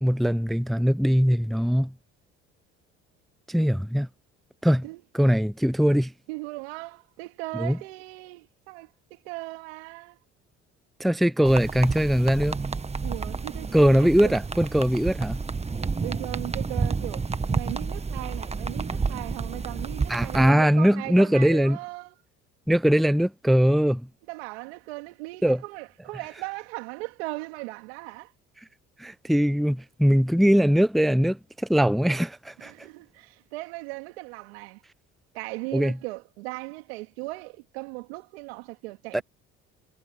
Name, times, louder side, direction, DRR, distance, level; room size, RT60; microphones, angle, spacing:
voice 1, 0.0-1.9 3.5-4.1 4.6-4.8 5.1-6.1 7.6-7.8 11.0-12.6 13.7-15.4 20.1-21.8 22.7-24.1 25.4-25.6 29.0-31.4 31.7-32.7 35.7-35.9 39.1-39.2, equal, ahead, 0.6 m, -21 dB
voice 2, 6.3-10.2 13.0-14.4 16.0-22.2 24.3-28.3 32.6-34.8 35.3-39.2, right 24 dB, 85° right, 3.1 m, -38 dB
sound 1, 11.4-20.5, right 4 dB, 20° right, 1.5 m, -30 dB
hypercardioid pair, 70°, 30 cm